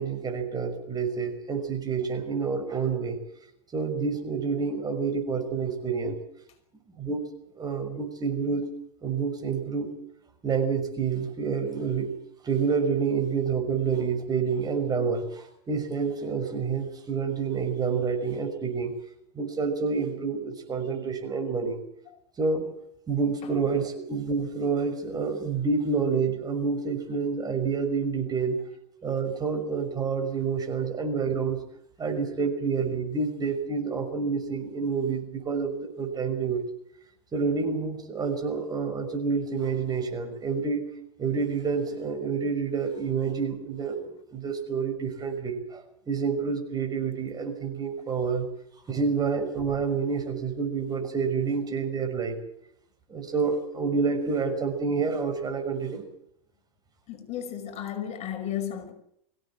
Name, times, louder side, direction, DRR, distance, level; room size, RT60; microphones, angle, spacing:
voice 1, 0.0-3.2 3.7-6.2 6.9-7.2 7.5-8.6 9.0-9.9 10.4-12.1 12.4-18.9 19.3-21.8 22.4-22.7 23.1-28.6 29.0-31.6 32.0-36.7 37.3-40.9 41.2-48.5 48.9-52.4 53.1-56.0, right 5 dB, 20° right, 6.1 m, -28 dB
voice 2, 57.1-58.9, left 10 dB, 40° left, 5.4 m, -33 dB
24.5 x 16.5 x 7.5 m
hypercardioid pair, 115°, 18 cm